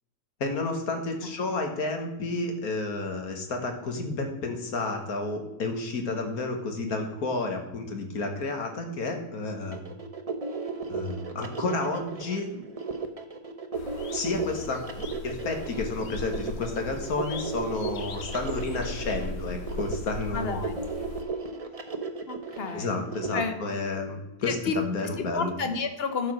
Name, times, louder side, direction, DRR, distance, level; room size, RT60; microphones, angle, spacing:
voice 1, 0.4-9.8 10.9-12.5 14.1-14.8 15.2-20.6 22.7-25.5, left 3 dB, 65° left, 4 dB, 2.0 m, -31 dB
sound 1, 9.7-23.4, right 4 dB, 30° right, 0.6 m, -35 dB
sound 2, 13.7-21.2, left 3 dB, 80° left, 1.5 m, -39 dB
voice 2, 20.3-20.9 22.3-23.0 23.3-23.5 24.4-24.8 25.2-26.3, left 5 dB, 45° left, 8 dB, 1.1 m, -31 dB
11.5 x 5.0 x 6.2 m, 0.93 s
omnidirectional pair, 1.7 m